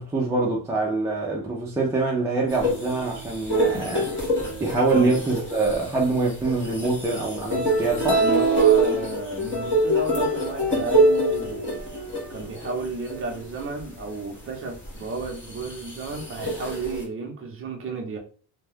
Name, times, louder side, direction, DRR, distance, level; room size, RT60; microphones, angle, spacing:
voice 1, 0.0-4.1 4.6-8.2, right 3 dB, 5° right, 0.3 m, -25 dB
sound 1, 2.5-13.8 14.3-14.4 14.8-17.0, right 2 dB, 30° left, 1.1 m, -25 dB
voice 2, 8.2-11.8 12.3-18.2, right 3 dB, 30° right, 0.7 m, -32 dB
2.7 x 2.2 x 3.4 m
cardioid pair, 160°, 42 cm